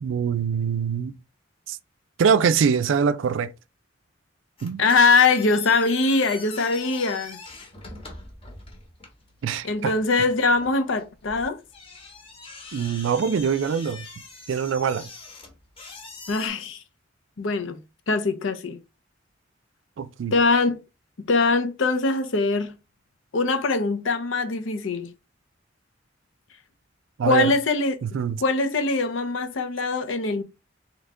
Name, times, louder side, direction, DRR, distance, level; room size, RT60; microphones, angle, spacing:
voice 1, 0.0-1.1 1.7-1.8 2.2-3.5 4.6-4.8 9.4-9.9 12.7-14.1 14.5-15.1 20.0-20.3 27.2-27.5 28.0-28.4, right 6 dB, 70° right, 0.4 m, -23 dB
sound 1, 4.6-16.5, left 3 dB, 30° left, 1.0 m, -43 dB
voice 2, 4.8-7.4 9.6-11.6 16.3-16.8 17.4-17.8 18.1-18.8 20.3-20.8 21.3-22.7 23.3-25.1 27.2-27.9 28.4-30.4, left 3 dB, 75° left, 0.7 m, -22 dB
3.5 x 3.0 x 3.7 m
head